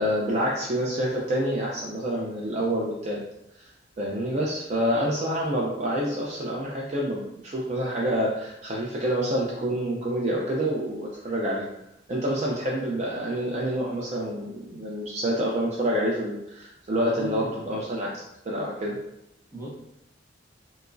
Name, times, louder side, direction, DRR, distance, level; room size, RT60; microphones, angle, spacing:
voice 1, 0.0-3.2 3.6-11.7 12.1-18.1 18.5-19.0, equal, 35° right, -3 dB, 0.4 m, -27 dB
voice 2, 16.9-17.8 19.5-19.7, right 1 dB, 15° right, -6 dB, 0.8 m, -37 dB
4.5 x 2.0 x 2.5 m, 0.84 s
head